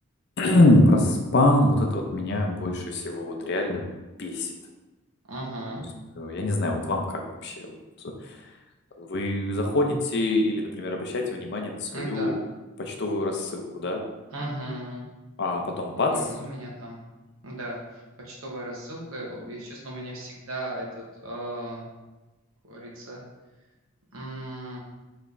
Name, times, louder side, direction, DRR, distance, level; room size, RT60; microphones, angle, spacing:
voice 1, 0.4-3.9 4.2-4.5 6.2-8.4 9.0-12.4 12.8-14.0 15.4-16.1, left 1 dB, 50° left, 3 dB, 0.5 m, -24 dB
voice 2, 5.3-5.8 11.9-12.4 14.3-15.1 16.0-17.0 17.4-21.9 22.7-23.2 24.1-24.8, right 1 dB, 70° right, -3 dB, 1.1 m, -36 dB
4.9 x 3.2 x 2.6 m, 1.1 s
head